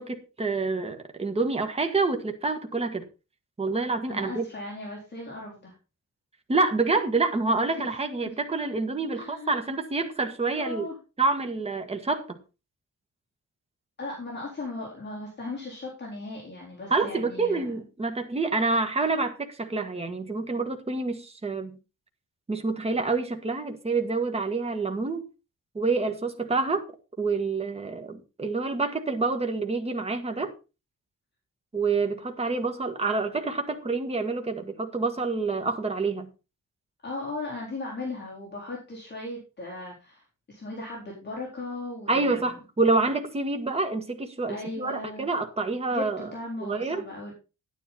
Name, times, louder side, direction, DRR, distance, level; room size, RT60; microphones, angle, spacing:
voice 1, 0.0-3.1 3.6-4.5 6.5-10.9 11.2-12.4 16.9-21.8 22.5-25.3 25.7-26.9 27.2-30.5 31.7-36.3 42.1-46.3 46.6-47.0, right 3 dB, 20° right, 1.5 m, -27 dB
voice 2, 4.1-5.7 9.1-9.6 10.5-10.9 14.0-17.8 37.0-42.5 44.5-45.3 45.9-47.3, left 2 dB, 35° left, 4.0 m, -37 dB
10.5 x 10.0 x 4.2 m
wide cardioid pair, 155°, 31 cm